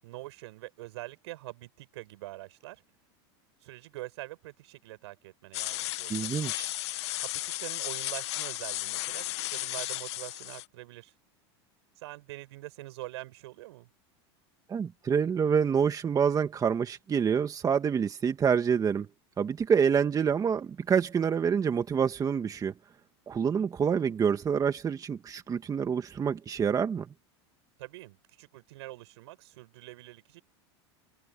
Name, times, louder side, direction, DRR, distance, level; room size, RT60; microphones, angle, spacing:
voice 1, 0.0-2.8 3.6-6.3 7.2-7.3 7.6-9.2 9.5-11.1 12.0-13.9 27.8-30.4, right 18 dB, 75° right, 7.3 m, -44 dB
sound 1, 5.5-10.7, left 17 dB, 75° left, 1.2 m, -34 dB
voice 2, 6.1-6.7 14.7-19.1 19.4-22.7 23.3-27.1, right 7 dB, 25° right, 2.0 m, -27 dB
hypercardioid pair, 110°, 14 cm